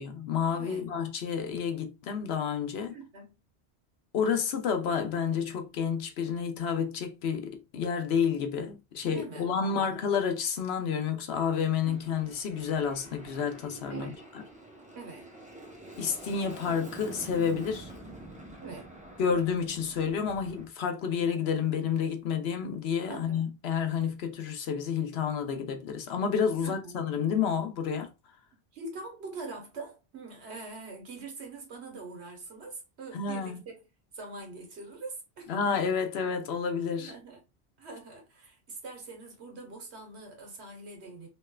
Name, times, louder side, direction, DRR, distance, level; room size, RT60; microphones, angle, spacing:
voice 1, 0.0-2.9 4.1-14.1 16.0-17.9 19.2-28.1 33.1-33.6 35.5-37.1, left 6 dB, 70° left, 0.9 m, -30 dB
voice 2, 0.5-0.8 2.9-3.4 9.0-9.9 11.8-12.2 13.9-14.2 14.9-15.3 18.6-18.9 23.1-23.5 26.6-27.0 28.7-33.7 34.1-35.9 37.0-37.4 37.8-41.3, right 3 dB, 75° right, 1.3 m, -43 dB
Aircraft, 11.8-20.6, right 1 dB, 10° right, 0.5 m, -47 dB
3.2 x 3.0 x 2.2 m
omnidirectional pair, 1.1 m